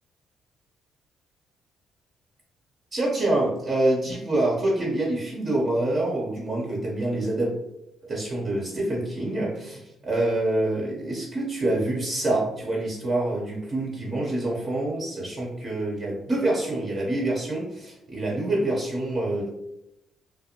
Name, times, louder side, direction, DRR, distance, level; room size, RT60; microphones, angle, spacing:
voice 1, 2.9-7.5 8.0-19.5, right 1 dB, 40° right, -4 dB, 0.7 m, -26 dB
2.4 x 2.1 x 2.8 m, 0.87 s
cardioid pair, 90°, 0 cm